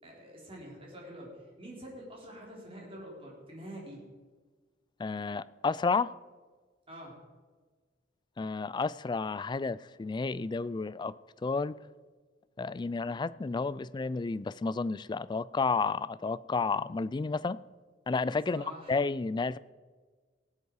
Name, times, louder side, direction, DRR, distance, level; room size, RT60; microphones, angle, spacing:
voice 1, 0.0-4.0 6.9-7.2 18.5-19.0, equal, 30° right, 3.8 m, -46 dB
voice 2, 5.0-6.2 8.4-11.1 11.4-11.7 12.6-17.6 18.1-19.6, left 4 dB, 25° left, 0.3 m, -31 dB
18.5 x 8.0 x 4.8 m
head